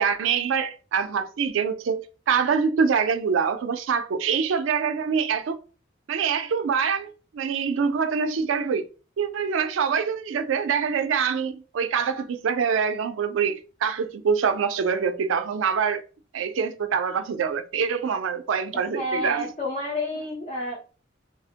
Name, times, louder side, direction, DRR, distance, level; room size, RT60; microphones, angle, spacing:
voice 1, 0.0-5.6 6.1-8.9 9.2-16.0 16.3-19.5, right 6 dB, 90° right, 0.4 m, -25 dB
voice 2, 18.9-20.9, left 1 dB, 40° left, 0.7 m, -30 dB
3.3 x 2.0 x 2.8 m
head